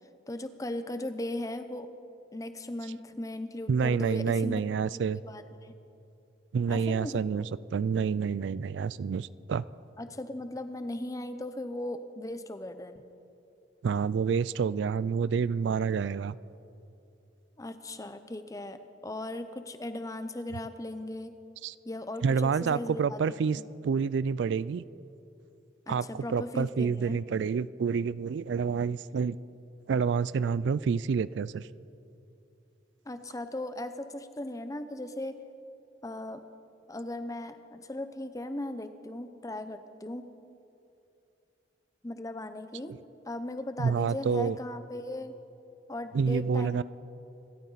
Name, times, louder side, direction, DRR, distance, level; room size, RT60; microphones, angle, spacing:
voice 1, 0.3-1.9 2.3-4.6 5.2-5.7 6.7-7.2 10.0-13.0 17.6-21.3 21.8-23.4 25.9-27.2 33.1-35.3 36.0-36.4 36.9-40.3 42.0-42.9 43.3-45.3 45.9-46.8, left 1 dB, 20° left, 10 dB, 0.7 m, -37 dB
voice 2, 3.7-5.2 6.5-9.6 13.8-16.4 21.6-21.7 22.2-24.8 25.9-29.4 29.9-31.7 42.9-43.0 43.8-44.6 46.1-46.8, right 6 dB, 75° right, 18 dB, 0.3 m, -28 dB
26.0 x 13.5 x 4.0 m, 2.7 s
head